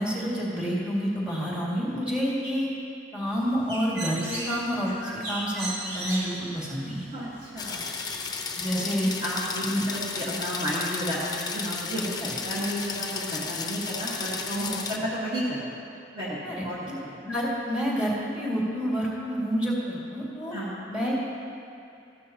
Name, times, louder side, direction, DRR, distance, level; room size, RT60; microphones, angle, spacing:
voice 1, 0.0-2.7 3.1-7.1 8.6-9.1 9.6-9.8 12.2-12.3 14.9-15.0 16.4-20.5 20.9-21.1, equal, 5° right, -6 dB, 2.2 m, -29 dB
Bird, 3.3-8.7, right 1 dB, 70° right, 2.5 m, -37 dB
voice 2, 7.1-7.9 8.7-15.8 16.1-16.8 17.1-17.2 20.5-20.7, equal, 30° right, -8 dB, 1.5 m, -32 dB
sound 1, 7.6-15.0, left 5 dB, 20° left, 0.7 m, -33 dB
14.0 x 12.0 x 2.9 m, 2.6 s
head